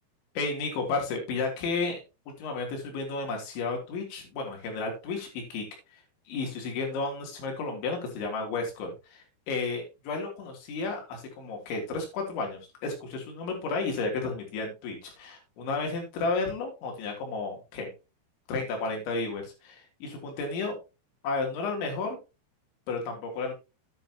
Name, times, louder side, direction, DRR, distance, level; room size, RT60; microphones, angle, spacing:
voice 1, 0.4-2.0 2.4-5.7 5.9-6.0 6.3-17.9 18.5-20.8 21.2-22.2 22.9-23.5, left 3 dB, 65° left, 2 dB, 5.3 m, -32 dB
11.0 x 9.7 x 2.9 m, 0.28 s
omnidirectional pair, 5.8 m